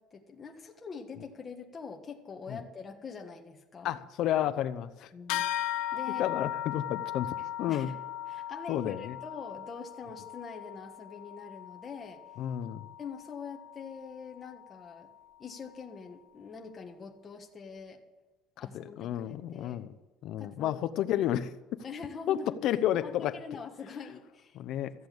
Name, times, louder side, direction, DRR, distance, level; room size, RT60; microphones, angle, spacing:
voice 1, 0.0-4.0 5.1-5.5 5.9-6.3 7.7-7.9 8.3-12.2 13.0-15.1 15.4-18.0 18.6-19.8 20.4-20.8 21.8-22.6 23.0-24.6, left 5 dB, 25° left, 2 dB, 1.5 m, -44 dB
voice 2, 3.8-5.1 6.2-7.9 8.7-9.2 12.4-12.9 18.6-20.0 20.2-21.8 22.3-23.4 24.5-24.9, left 11 dB, 55° left, 12 dB, 0.8 m, -31 dB
sound 1, 5.3-15.1, left 12 dB, 85° left, 0.8 m, -38 dB
14.0 x 8.0 x 8.7 m, 1.1 s
cardioid pair, 150°, 0 cm